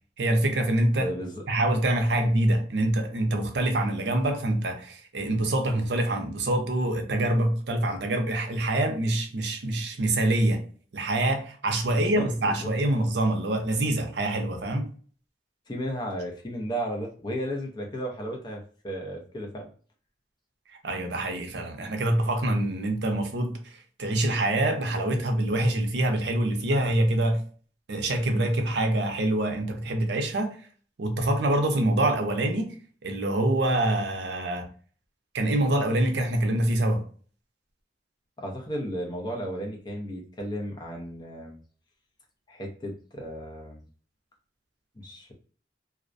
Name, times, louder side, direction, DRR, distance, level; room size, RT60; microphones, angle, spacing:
voice 1, 0.2-1.1 1.5-10.6 10.9-14.9 20.8-27.4 27.9-30.6 31.0-32.8 33.0-34.7 35.3-37.0, right 1 dB, 70° right, 0.5 m, -25 dB
voice 2, 0.9-1.4 11.9-12.7 15.7-19.7 38.4-41.6 42.5-43.8 45.0-45.3, equal, 25° left, 0.6 m, -34 dB
2.4 x 2.1 x 2.5 m
head